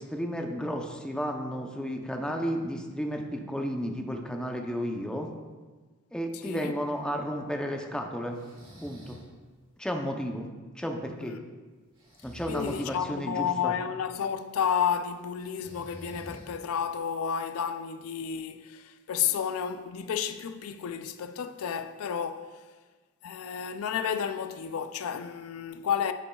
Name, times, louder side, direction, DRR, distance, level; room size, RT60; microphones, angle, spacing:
voice 1, 0.0-5.3 6.1-8.4 8.8-9.2 9.8-10.5 10.7-11.4 12.2-13.7, equal, 5° left, 0.6 m, -33 dB
voice 2, 6.3-6.7 11.2-11.5 12.5-22.7 23.2-26.1, left 8 dB, 80° left, 0.4 m, -31 dB
Breathing, 8.3-9.3 12.0-13.0 15.4-16.8, equal, 25° right, 1.8 m, -47 dB
9.5 x 6.9 x 2.3 m
head